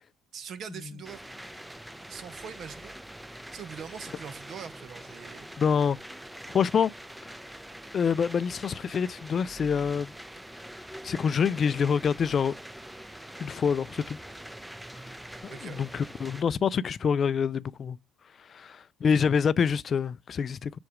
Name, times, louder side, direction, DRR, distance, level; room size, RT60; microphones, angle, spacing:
voice 1, 0.3-1.2 2.1-2.9 3.5-5.5 15.5-15.9, right 7 dB, 55° right, 0.9 m, -42 dB
sound 1, 1.0-16.4, right 1 dB, 5° right, 0.6 m, -44 dB
voice 2, 5.6-6.0 6.5-6.9 7.9-10.1 11.0-12.5 13.4-14.2 15.4-18.0 18.5-20.7, left 6 dB, 45° left, 0.4 m, -26 dB
6.1 x 4.7 x 4.9 m
hypercardioid pair, 65°, 0 cm